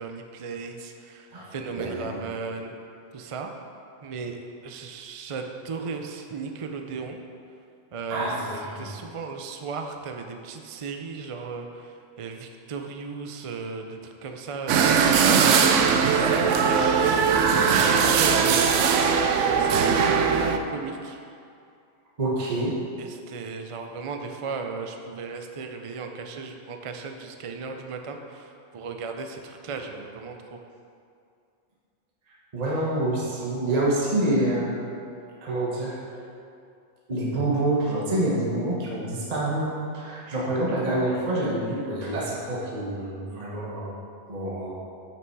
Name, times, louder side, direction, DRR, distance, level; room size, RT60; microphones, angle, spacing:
voice 1, 0.0-1.3 1.5-2.7 3.1-3.5 4.0-7.2 7.9-8.3 8.8-11.7 12.2-15.0 15.8-20.0 20.3-21.2 23.0-28.5 28.7-30.4, right 4 dB, 50° right, 4 dB, 0.3 m, -36 dB
voice 2, 1.3-2.2 8.1-8.9 22.2-22.8 32.5-34.8 35.4-36.0 37.1-39.7 39.9-43.9 44.3-44.7, right 1 dB, 30° right, -5 dB, 1.2 m, -27 dB
sound 1, 14.7-20.6, right 6 dB, 70° right, 0.9 m, -20 dB
8.2 x 6.1 x 4.7 m, 2.4 s
omnidirectional pair, 1.3 m